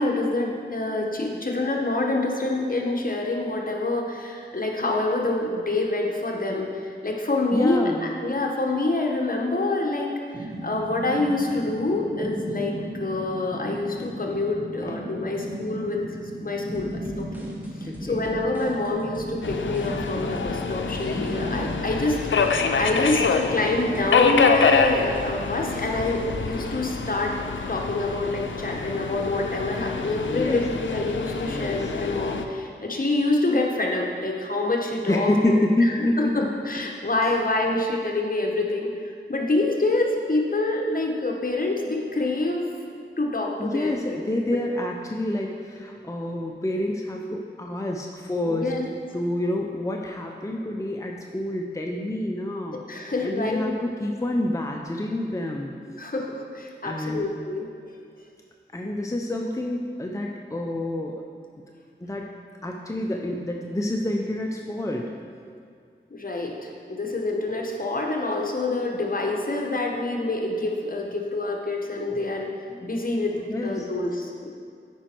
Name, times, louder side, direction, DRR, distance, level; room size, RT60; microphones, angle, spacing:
voice 1, 0.0-16.9 17.2-17.5 17.8-22.2 22.8-27.4 27.7-35.9 36.2-42.7 43.2-44.2 48.4-48.8 52.7-53.7 56.0-57.7 66.1-72.5 72.8-74.5, left 2 dB, 45° left, 0 dB, 1.2 m, -26 dB
voice 2, 7.5-8.1 14.8-14.9 17.9-18.2 30.3-30.6 31.4-31.9 35.1-36.3 43.6-48.7 49.1-52.8 53.2-55.7 56.8-57.2 58.7-61.2 62.0-62.3 62.6-65.1 72.7-72.8 73.5-73.9, left 1 dB, 15° left, 1 dB, 0.6 m, -27 dB
sound 1, 10.3-23.0, equal, 40° right, 1.4 m, -36 dB
sound 2, 16.7-26.3, equal, 10° right, 1.4 m, -45 dB
Subway metro underground, 19.4-32.5, left 5 dB, 85° left, 0.5 m, -26 dB
9.0 x 5.1 x 4.5 m, 2.3 s
wide cardioid pair, 45°, 19 cm